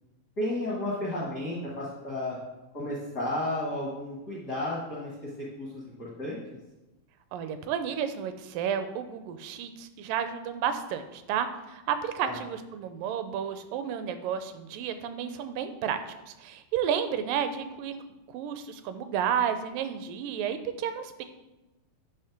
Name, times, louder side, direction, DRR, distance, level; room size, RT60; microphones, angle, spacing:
voice 1, 0.4-2.4 2.7-6.4 12.2-12.4, left 1 dB, 60° left, -6 dB, 1.0 m, -33 dB
voice 2, 7.3-16.0 16.3-18.0 18.3-21.2, right 8 dB, 85° right, 9 dB, 2.2 m, -31 dB
8.5 x 3.2 x 5.8 m, 1.0 s
omnidirectional pair, 3.9 m